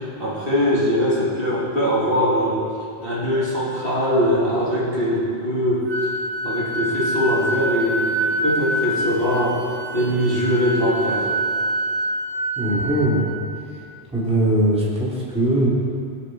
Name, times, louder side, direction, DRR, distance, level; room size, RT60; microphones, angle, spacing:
voice 1, 0.0-2.6 3.0-5.9 6.4-9.6 9.9-11.3, equal, 55° right, -7 dB, 3.0 m, -21 dB
Wind instrument woodwind instrument, 5.9-13.6, right 1 dB, 85° right, 1.7 m, -26 dB
voice 2, 12.6-13.3 14.1-15.7, right 1 dB, 5° right, -7 dB, 2.4 m, -20 dB
22.0 x 7.5 x 3.9 m, 2.5 s
omnidirectional pair, 1.1 m